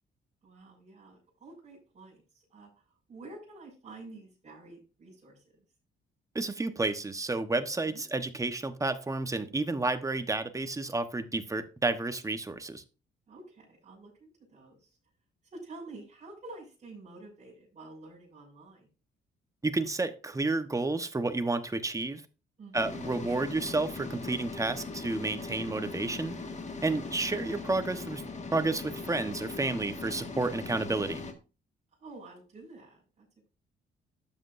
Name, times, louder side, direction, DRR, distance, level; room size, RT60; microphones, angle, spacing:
voice 1, 0.4-2.7 3.1-5.4 7.9-8.0 13.3-14.9 15.5-18.9 22.6-23.1 26.7-27.1 32.0-33.5, right 2 dB, 35° right, -5 dB, 5.3 m, -49 dB
voice 2, 6.3-12.8 19.6-22.2 22.7-26.3 26.8-28.2 28.5-31.2, right 3 dB, 15° right, 9 dB, 1.0 m, -31 dB
sound 1, 22.7-31.3, left 3 dB, 35° left, 1.7 m, -40 dB
12.0 x 7.8 x 2.6 m, 0.31 s
cardioid pair, 90°, 20 cm